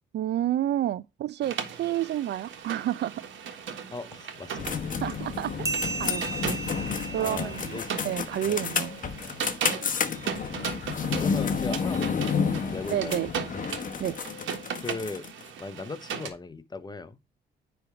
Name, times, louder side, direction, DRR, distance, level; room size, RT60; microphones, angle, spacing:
voice 1, 0.1-3.2 5.0-5.7 6.0-6.6 7.1-8.9 9.7-9.9 12.9-13.3 14.0-14.2, right 12 dB, 60° right, 0.4 m, -30 dB
sound 1, 1.4-16.3, right 7 dB, 75° right, 1.6 m, -38 dB
voice 2, 3.9-5.2 6.8-7.9 8.5-8.7 11.2-12.4 12.7-13.6 14.8-15.3 15.6-17.2, left 3 dB, 20° left, 0.8 m, -38 dB
sound 2, 4.6-15.4, left 6 dB, 40° left, 1.0 m, -31 dB
sound 3, 5.6-8.7, right 3 dB, 15° right, 0.7 m, -36 dB
9.8 x 3.5 x 4.7 m
cardioid pair, 90°, 20 cm